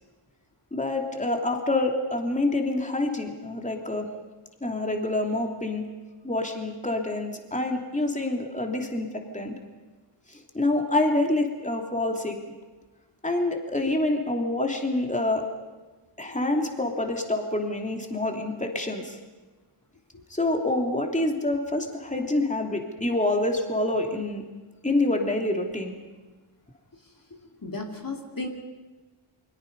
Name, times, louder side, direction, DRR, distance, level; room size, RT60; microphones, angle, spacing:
voice 1, 0.7-4.1 4.6-5.9 6.2-9.1 9.3-9.6 10.3-12.4 13.2-15.4 16.2-19.2 20.3-24.4 24.8-26.0, left 2 dB, 15° left, 2 dB, 2.9 m, -27 dB
voice 2, 27.6-28.5, left 2 dB, 40° left, 1 dB, 2.7 m, -34 dB
29.0 x 22.5 x 5.4 m, 1.3 s
wide cardioid pair, 65°, 50 cm